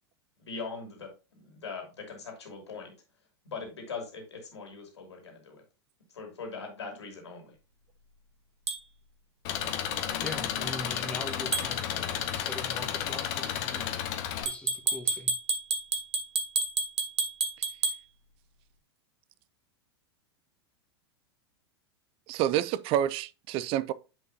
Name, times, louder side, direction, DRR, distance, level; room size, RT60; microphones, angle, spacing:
voice 1, 0.4-2.9 3.4-5.6 6.1-7.6, left 4 dB, 80° left, 2.8 m, -41 dB
sound 1, 8.7-8.8 11.5-11.7 14.5-18.0, right 4 dB, 80° right, 1.1 m, -30 dB
Engine, 9.4-14.4, left 10 dB, 50° left, 1.3 m, -32 dB
voice 2, 10.2-13.9 14.4-15.3, left 2 dB, 10° left, 1.7 m, -41 dB
voice 3, 22.3-23.9, right 11 dB, 40° right, 0.5 m, -28 dB
9.5 x 5.4 x 2.8 m
figure-of-eight pair, 95°, 14 cm